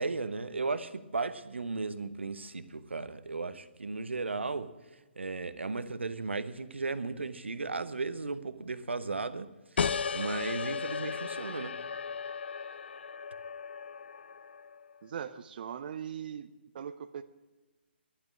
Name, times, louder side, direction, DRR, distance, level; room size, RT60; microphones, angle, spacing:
voice 1, 0.0-4.7 5.2-9.5 9.8-9.9 10.1-11.8, right 3 dB, 80° right, 1.0 m, -35 dB
sound 1, 9.8-15.0, left 6 dB, 65° left, 0.4 m, -36 dB
voice 2, 15.0-16.5 16.7-17.2, right 8 dB, 50° right, 0.7 m, -40 dB
12.0 x 9.2 x 8.6 m
figure-of-eight pair, 135°, 6 cm